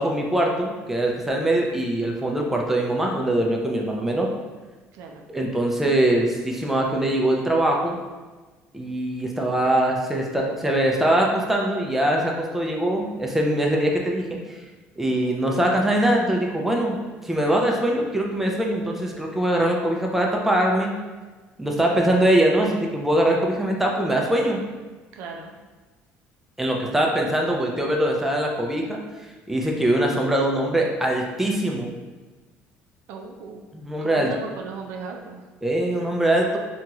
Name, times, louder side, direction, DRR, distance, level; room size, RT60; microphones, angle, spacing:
voice 1, 0.0-4.3 5.3-8.0 8.7-14.6 15.0-21.0 21.6-24.6 26.6-29.0 29.5-31.9 33.7-34.3 35.6-36.6, right 1 dB, 5° right, 0 dB, 0.4 m, -22 dB
voice 2, 4.9-5.3 25.1-25.5 33.1-33.6 34.0-35.4, right 4 dB, 80° right, 2 dB, 0.4 m, -37 dB
2.9 x 2.8 x 2.3 m, 1.3 s
cardioid pair, 110°, 5 cm